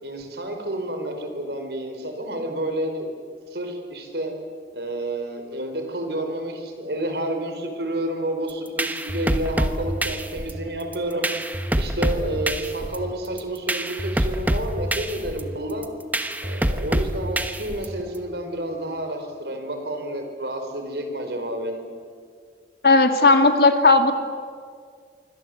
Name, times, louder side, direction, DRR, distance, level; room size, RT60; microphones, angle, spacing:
voice 1, 0.0-3.1 3.5-4.3 4.7-11.3 11.7-15.9 16.4-21.8, right 1 dB, 75° right, 5 dB, 4.7 m, -30 dB
sound 1, 8.5-18.2, right 1 dB, 10° right, 1.1 m, -26 dB
voice 2, 22.8-24.1, left 3 dB, 60° left, 7 dB, 2.2 m, -15 dB
26.5 x 24.0 x 7.9 m, 2.1 s
head